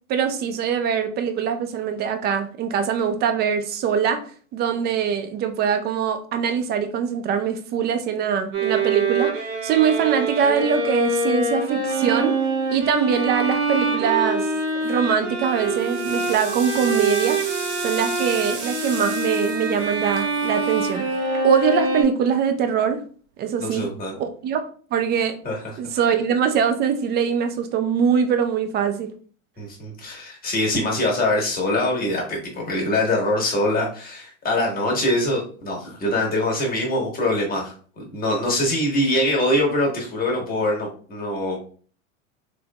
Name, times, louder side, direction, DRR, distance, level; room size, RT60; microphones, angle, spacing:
voice 1, 0.1-4.2 4.5-9.3 9.6-12.4 12.7-14.5 14.7-17.4 17.8-21.0 21.4-23.0 23.4-23.9 24.2-24.6 24.9-25.4 25.8-29.1, right 7 dB, 25° right, 0.4 m, -22 dB
Bowed string instrument, 8.5-22.0, right 2 dB, 65° right, 1.6 m, -25 dB
sound 1, 14.7-15.1 15.5-21.8, right 5 dB, 45° right, 1.0 m, -36 dB
voice 2, 23.6-24.2 25.4-25.6 29.6-41.6, left 1 dB, 20° left, 1.6 m, -23 dB
3.5 x 3.3 x 2.3 m
hypercardioid pair, 100°, 40 cm